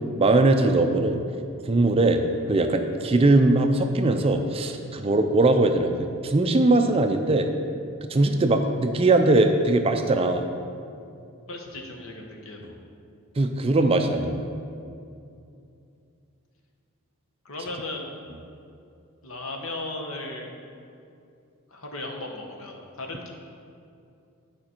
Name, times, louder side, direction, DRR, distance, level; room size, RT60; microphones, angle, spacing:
voice 1, 0.2-1.2 1.7-2.2 2.5-7.5 8.1-10.5 13.4-14.5, right 2 dB, 25° right, 6 dB, 0.3 m, -21 dB
voice 2, 11.5-12.7 17.4-18.1 19.2-20.5 21.7-23.3, left 2 dB, 65° left, 1 dB, 1.0 m, -36 dB
9.7 x 5.1 x 4.4 m, 2.5 s
head